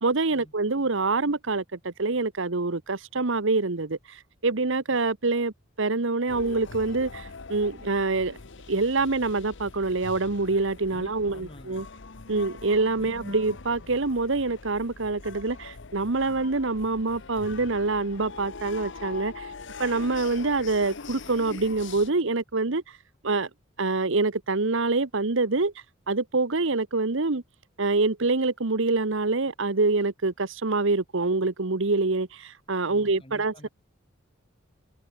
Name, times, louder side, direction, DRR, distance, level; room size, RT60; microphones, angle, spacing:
voice 1, 0.0-8.4 8.7-11.8 12.3-19.5 19.8-23.0 23.2-23.5 23.8-25.7 26.1-27.4 27.8-33.7, right 3 dB, 60° right, 1.1 m, -26 dB
sound 1, 6.3-22.1, left 4 dB, 60° left, 1.1 m, -42 dB
voice 2, 10.9-11.9 13.0-13.1 32.9-33.7, left 1 dB, 25° left, 5.4 m, -49 dB
head